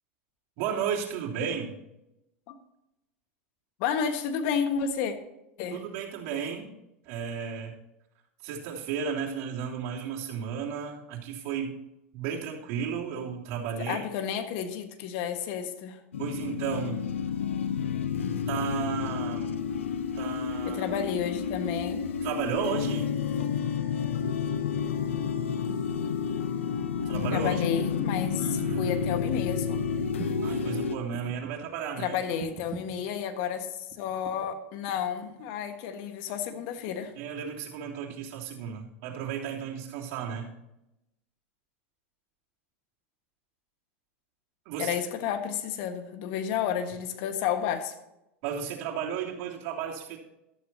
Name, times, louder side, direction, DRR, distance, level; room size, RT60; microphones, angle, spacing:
voice 1, 0.6-1.8 5.7-6.7 7.0-7.8 8.4-11.8 12.1-14.0 16.2-17.0 18.5-19.5 20.1-21.0 22.2-23.1 27.0-27.7 28.4-29.0 30.4-32.2 37.2-40.5 44.6-45.0 48.4-50.2, right 7 dB, 55° right, -4 dB, 3.2 m, -33 dB
voice 2, 3.8-5.1 5.6-5.8 13.8-16.0 20.6-22.1 27.3-29.8 32.0-37.1 44.8-47.9, left 8 dB, 60° left, 7 dB, 1.5 m, -31 dB
sound 1, 16.1-31.0, left 7 dB, 85° left, 0.9 m, -30 dB
sound 2, 29.7-29.8 30.2-30.5 31.1-31.7 32.4-33.0 33.9-34.5 34.9-35.5 36.5-37.2 38.1-38.2, right 7 dB, 35° right, 1.8 m, -44 dB
14.5 x 12.5 x 2.9 m, 0.89 s
hypercardioid pair, 95°, 7 cm